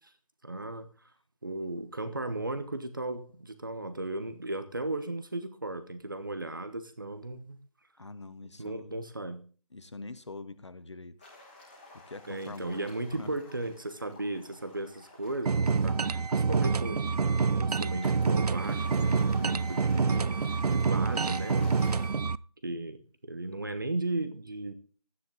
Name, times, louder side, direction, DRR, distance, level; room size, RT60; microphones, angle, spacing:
voice 1, 0.4-0.9 1.4-7.6 8.6-9.4 12.3-17.3 17.5-22.0 22.6-24.7, right 2 dB, 35° right, 10 dB, 1.1 m, -35 dB
voice 2, 8.0-9.0 9.7-11.2 11.9-12.9 13.2-13.4, left 3 dB, 50° left, 13 dB, 1.0 m, -44 dB
sound 1, 11.2-22.1, left 2 dB, 15° left, 2.4 m, -52 dB
sound 2, 15.5-22.4, right 5 dB, 85° right, 0.5 m, -27 dB
12.0 x 9.6 x 3.8 m, 0.38 s
figure-of-eight pair, 180°, 19 cm